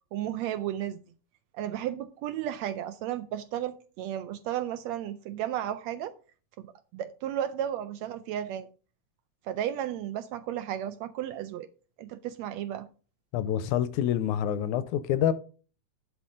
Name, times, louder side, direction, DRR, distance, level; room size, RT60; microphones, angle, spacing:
voice 1, 0.1-1.0 1.5-6.1 6.6-8.7 9.5-11.7 12.0-12.9, right 11 dB, 80° right, 1.6 m, -33 dB
voice 2, 13.3-15.3, left 10 dB, 85° left, 2.0 m, -27 dB
11.5 x 6.1 x 3.8 m
omnidirectional pair, 3.5 m